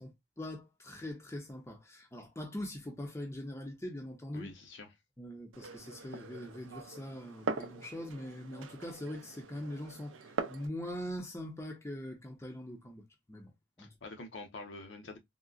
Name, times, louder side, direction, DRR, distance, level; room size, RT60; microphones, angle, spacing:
voice 1, 0.0-4.5 5.2-13.5 13.8-13.9, left 1 dB, 15° left, 0.6 m, -42 dB
voice 2, 4.3-4.9 13.8-15.2, left 3 dB, 65° left, 0.7 m, -46 dB
Glass, 5.5-10.7, right 4 dB, 80° right, 0.5 m, -42 dB
3.7 x 2.1 x 2.3 m
head